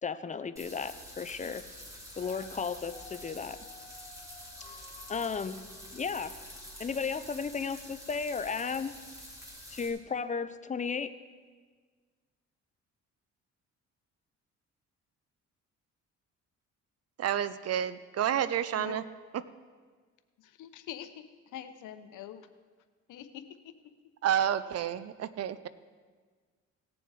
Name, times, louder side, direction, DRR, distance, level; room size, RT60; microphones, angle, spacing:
voice 1, 0.0-1.6 2.2-3.6 5.1-5.6 5.9-6.3 6.8-8.9 9.7-11.1, left 5 dB, 25° left, 12 dB, 0.6 m, -34 dB
sound 1, 0.6-9.9, equal, 10° right, 3.1 m, -48 dB
Dog, 1.9-7.3 7.8-7.9, left 4 dB, 10° left, 1.7 m, -54 dB
voice 2, 17.2-19.0 24.2-25.7, right 10 dB, 55° right, 15 dB, 0.6 m, -30 dB
voice 3, 20.4-22.5 23.1-23.8, left 10 dB, 85° left, 10 dB, 0.9 m, -45 dB
18.0 x 7.0 x 4.8 m, 1.5 s
cardioid pair, 90°, 30 cm